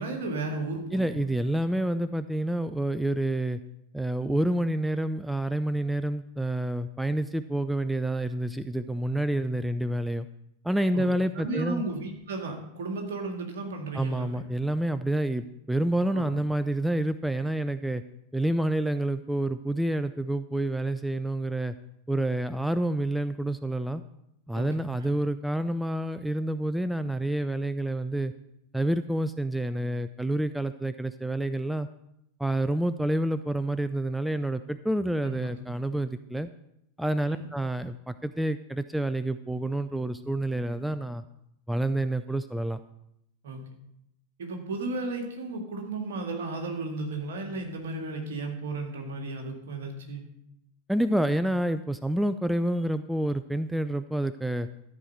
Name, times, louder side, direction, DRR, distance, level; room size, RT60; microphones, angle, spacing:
voice 1, 0.0-1.2 10.9-11.1 11.3-14.4 16.1-16.2 24.5-24.7 25.0-25.1 35.2-35.5 37.3-37.4 43.4-43.6 44.4-50.2, right 3 dB, 60° right, 3 dB, 2.0 m, -34 dB
voice 2, 0.9-3.6 3.9-10.3 10.6-11.8 13.9-18.0 18.3-21.7 22.1-24.0 24.5-28.3 28.7-31.9 32.4-36.5 37.0-41.2 41.7-42.8 50.9-54.7, right 1 dB, 5° right, 12 dB, 0.4 m, -28 dB
13.0 x 4.7 x 6.7 m, 0.79 s
figure-of-eight pair, 90°, 0 cm